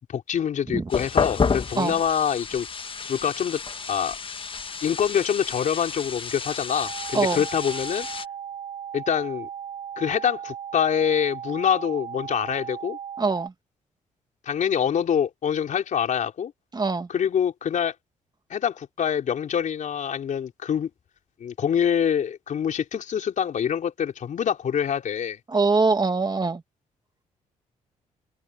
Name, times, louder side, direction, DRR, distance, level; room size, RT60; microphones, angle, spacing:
voice 1, 0.1-2.7 3.1-3.6 3.9-4.2 4.8-8.1 8.9-9.5 10.0-13.0 14.5-16.5 17.1-17.9 18.5-20.9 21.4-25.4, left 8 dB, 65° left, 4.1 m, -25 dB
sound 1, 0.9-8.3, left 5 dB, 40° left, 1.3 m, -30 dB
sound 2, 6.7-13.5, right 9 dB, 45° right, 2.1 m, -37 dB
voice 2, 13.2-13.5 16.7-17.1 25.5-26.6, right 3 dB, 30° right, 2.1 m, -23 dB
supercardioid pair, 60°, 14 cm